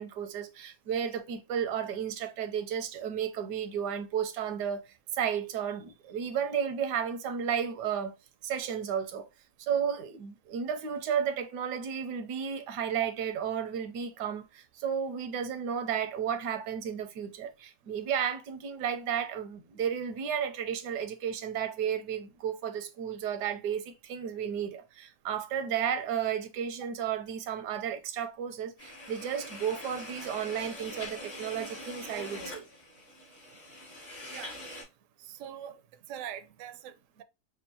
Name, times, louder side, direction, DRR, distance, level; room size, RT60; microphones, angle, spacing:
voice 1, 0.0-4.8 5.1-8.1 8.4-9.3 9.6-32.7, right 8 dB, 80° right, 1.3 m, -33 dB
sound 1, 28.8-34.8, left 1 dB, 70° left, 3.2 m, -43 dB
voice 2, 35.2-35.8 36.1-37.2, right 10 dB, 65° right, 0.8 m, -43 dB
6.3 x 2.4 x 2.8 m
omnidirectional pair, 1.8 m